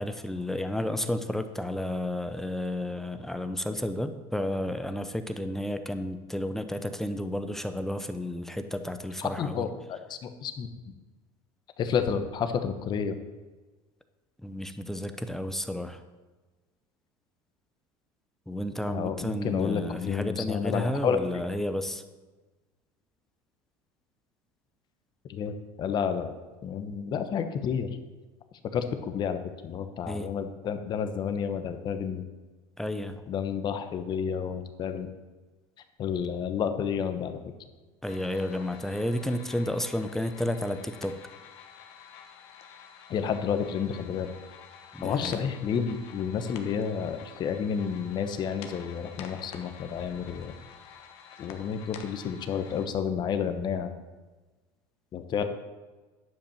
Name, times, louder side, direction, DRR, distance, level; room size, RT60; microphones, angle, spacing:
voice 1, 0.0-9.7 14.4-16.0 18.5-22.0 30.1-30.3 32.8-33.1 38.0-41.1 44.9-45.4, left 1 dB, 5° left, 9 dB, 0.6 m, -32 dB
voice 2, 9.2-11.0 11.8-13.2 18.9-21.4 25.2-26.3 26.6-27.9 28.7-32.2 33.3-35.1 36.0-37.4 43.1-44.3 45.0-50.6 51.4-53.9 55.1-55.4, left 7 dB, 40° left, 9 dB, 1.0 m, -30 dB
sound 1, 38.1-52.9, left 7 dB, 65° left, 1.2 m, -49 dB
10.0 x 5.2 x 7.1 m, 1.2 s
supercardioid pair, 125°, 11 cm